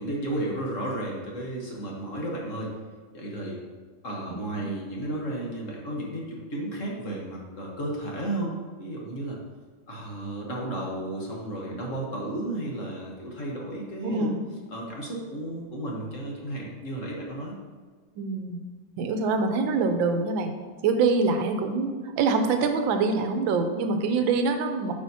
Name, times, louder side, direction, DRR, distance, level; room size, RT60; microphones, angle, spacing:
voice 1, 0.0-2.7 3.1-3.6 4.0-9.4 9.9-14.3 14.7-17.5, right 1 dB, 45° left, -2 dB, 1.3 m, -33 dB
voice 2, 14.0-14.4 18.2-18.6 19.0-20.5 20.8-24.9, right 4 dB, 75° right, 6 dB, 1.4 m, -25 dB
8.5 x 5.9 x 2.8 m, 1.5 s
omnidirectional pair, 2.2 m